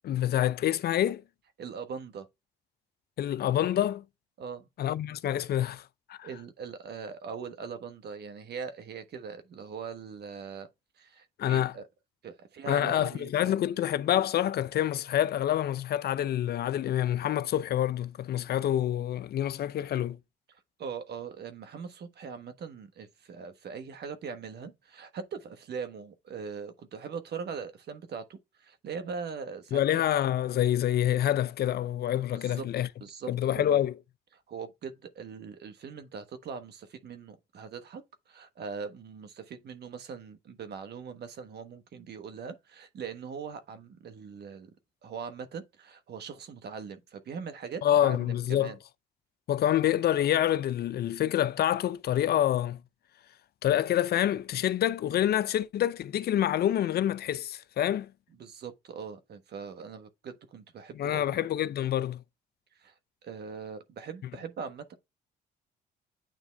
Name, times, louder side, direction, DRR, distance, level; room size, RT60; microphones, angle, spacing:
voice 1, 0.0-1.2 3.2-4.0 4.8-5.8 6.1-6.3 11.4-11.7 12.7-20.2 29.7-32.9 33.3-33.9 47.8-48.7 49.5-52.8 53.6-58.1 61.0-62.2, left 11 dB, 55° left, 0.5 m, -27 dB
voice 2, 1.6-2.3 4.4-4.7 6.2-10.7 11.0-11.8 12.2-13.6 20.5-30.0 32.4-32.6 33.0-33.8 34.5-44.7 45.0-48.8 58.4-61.4 62.8-62.9 63.2-64.9, right 6 dB, 60° right, 1.4 m, -41 dB
9.0 x 3.5 x 3.4 m
supercardioid pair, 70°, 19 cm